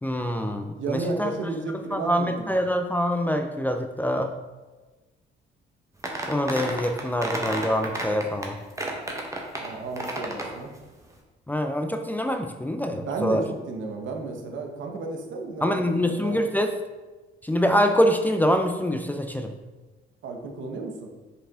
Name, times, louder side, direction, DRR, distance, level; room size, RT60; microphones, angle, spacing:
voice 1, 0.0-1.3 1.9-4.3 6.3-8.6 11.5-13.4 15.6-16.7 17.4-19.5, equal, 10° left, 6 dB, 0.4 m, -25 dB
voice 2, 0.8-2.5 9.6-10.7 12.9-16.5 20.2-21.1, right 3 dB, 75° right, 2 dB, 1.1 m, -33 dB
sound 1, 6.0-8.4 8.8-10.6, right 1 dB, 15° right, 1.1 m, -31 dB
5.6 x 4.8 x 3.6 m, 1.2 s
cardioid pair, 90°, 20 cm